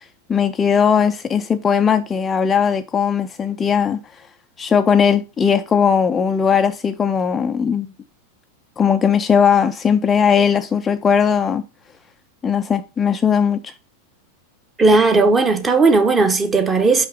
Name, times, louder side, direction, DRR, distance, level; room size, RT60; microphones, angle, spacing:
voice 1, 0.3-4.0 4.6-7.9 8.8-11.6 12.4-13.7, left 7 dB, 20° left, 0.4 m, -18 dB
voice 2, 14.8-17.1, right 3 dB, 15° right, 1.0 m, -15 dB
5.6 x 5.5 x 3.7 m
figure-of-eight pair, 90°, 0 cm